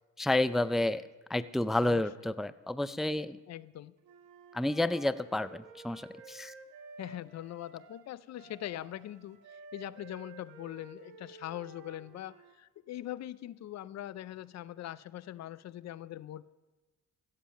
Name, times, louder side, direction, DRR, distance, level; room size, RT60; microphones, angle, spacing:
voice 1, 0.2-1.0 1.3-3.4 4.5-6.5, left 1 dB, ahead, 15 dB, 0.4 m, -30 dB
voice 2, 1.8-2.1 3.5-3.9 7.0-16.4, left 13 dB, 60° left, 18 dB, 0.5 m, -42 dB
Wind instrument woodwind instrument, 4.0-12.6, right 4 dB, 80° right, 1.7 m, -52 dB
15.5 x 7.4 x 6.3 m, 1.2 s
cardioid pair, 90°, 30 cm